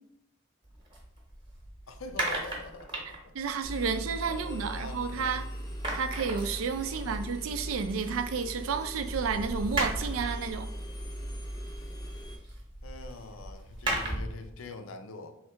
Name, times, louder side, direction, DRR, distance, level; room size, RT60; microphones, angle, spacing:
sound 1, 0.6-5.3 5.6-14.5, right 2 dB, 25° right, 0.8 m, -38 dB
voice 1, 1.9-3.8 4.2-5.4 6.9-7.3 12.8-15.3, left 3 dB, 80° left, 0.5 m, -44 dB
voice 2, 3.1-5.5 5.9-10.7, right 5 dB, 80° right, 0.4 m, -31 dB
Engine, 3.6-12.4, equal, 20° left, 0.5 m, -39 dB
3.2 x 2.8 x 4.4 m
head